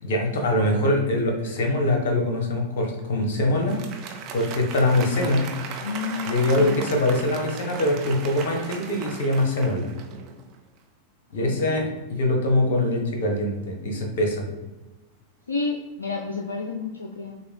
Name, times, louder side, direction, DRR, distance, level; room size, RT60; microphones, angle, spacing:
voice 1, 0.0-3.8 4.3-5.4 6.3-9.9 11.3-14.4, left 1 dB, 55° left, 2 dB, 1.1 m, -23 dB
Applause, 3.5-10.5, right 6 dB, 40° right, 0.6 m, -37 dB
voice 2, 5.8-6.3 6.6-6.8 11.3-11.8 15.5-17.4, left 4 dB, 75° left, 2 dB, 0.4 m, -30 dB
6.5 x 2.2 x 3.5 m, 1.1 s
figure-of-eight pair, 90°, 0 cm